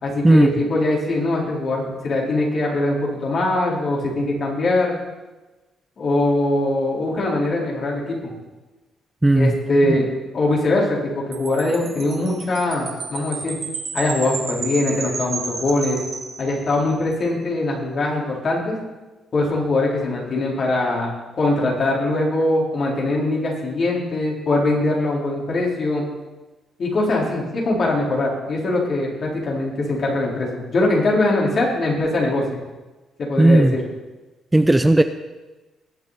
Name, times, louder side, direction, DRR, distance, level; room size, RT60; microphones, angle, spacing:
voice 1, 0.0-4.9 6.0-8.3 9.3-10.1 10.3-13.6 13.9-16.0 16.4-18.8 19.3-26.1 26.8-32.6 33.2-33.9, left 2 dB, 50° left, -2 dB, 4.1 m, -22 dB
voice 2, 9.2-9.5 33.4-33.7 34.5-35.0, right 2 dB, 10° right, 9 dB, 0.6 m, -14 dB
Wind chime, 11.3-17.0, right 4 dB, 50° right, 2.6 m, -32 dB
20.5 x 8.2 x 4.2 m, 1.1 s
cardioid pair, 90°, 0 cm